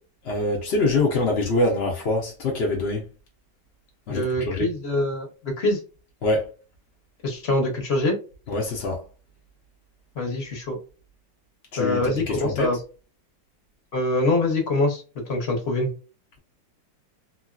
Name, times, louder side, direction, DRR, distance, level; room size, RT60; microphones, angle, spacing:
voice 1, 0.2-3.1 4.1-4.7 6.2-6.5 8.5-9.1 11.7-12.8, left 2 dB, 60° left, 0.6 m, -24 dB
voice 2, 4.1-5.8 7.2-8.2 10.2-10.8 11.8-12.8 13.9-15.0 15.3-15.9, left 2 dB, 45° left, 1.0 m, -24 dB
3.0 x 2.7 x 2.3 m
omnidirectional pair, 2.0 m